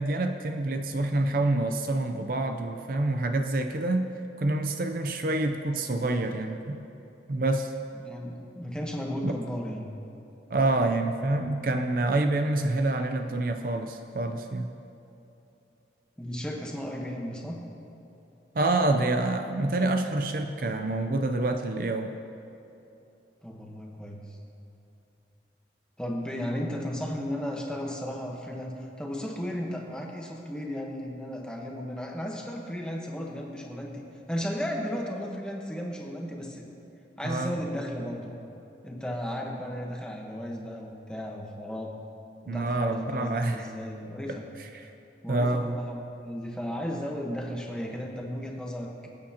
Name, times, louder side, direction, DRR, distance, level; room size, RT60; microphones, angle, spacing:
voice 1, 0.0-4.1 4.4-6.8 7.3-7.7 9.2-9.3 10.5-14.7 18.5-22.1 37.2-37.5 42.5-43.7 44.3-44.8 45.3-45.8, right 2 dB, 50° right, 6 dB, 0.5 m, -27 dB
voice 2, 8.0-9.9 16.2-17.6 23.4-24.4 26.0-36.7 37.2-38.4 38.8-41.9 42.4-44.4 45.2-49.1, equal, 5° left, -1 dB, 1.1 m, -35 dB
21.5 x 8.7 x 2.9 m, 2.9 s
head